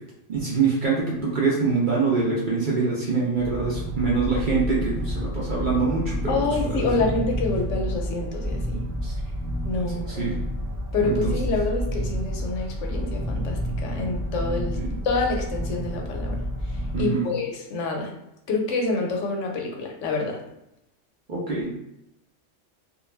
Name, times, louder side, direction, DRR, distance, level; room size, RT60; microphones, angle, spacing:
voice 1, 0.3-6.4 6.6-6.9 9.0-9.1 10.2-10.3 11.0-11.3 14.8-15.0 16.9-17.3 21.3-21.7, right 4 dB, 55° right, -5 dB, 0.6 m, -24 dB
sound 1, 3.3-17.0, equal, 25° left, 0.3 m, -29 dB
voice 2, 6.3-8.8 9.6-10.4 10.9-14.8 15.0-16.4 17.0-18.1 18.5-20.4, left 3 dB, 75° left, 1 dB, 0.9 m, -27 dB
2.3 x 2.3 x 3.1 m, 0.82 s
omnidirectional pair, 1.3 m